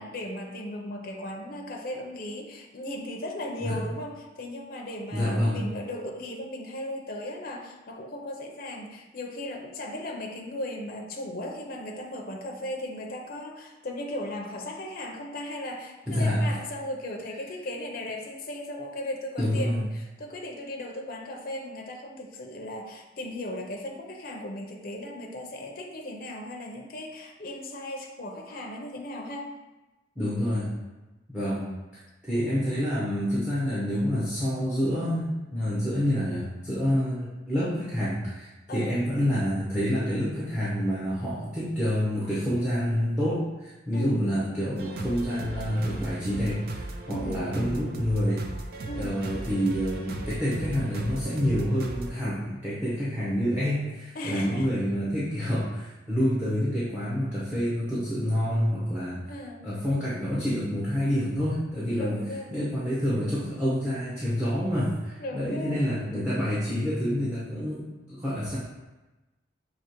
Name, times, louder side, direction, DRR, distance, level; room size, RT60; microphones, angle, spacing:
voice 1, 0.0-29.5 38.7-38.9 43.9-44.2 47.1-47.5 48.8-49.2 54.1-54.7 59.3-59.7 62.0-62.6 65.2-65.8, left 1 dB, 50° left, 0 dB, 0.5 m, -37 dB
voice 2, 5.1-5.6 16.1-16.5 19.4-19.8 30.2-30.7 31.3-31.7 32.2-48.4 48.9-59.3 59.6-62.2 62.5-68.6, equal, 5° right, -8 dB, 0.8 m, -28 dB
sound 1, 44.8-52.1, right 2 dB, 50° right, 0.4 m, -37 dB
6.1 x 2.9 x 2.9 m, 1.1 s
head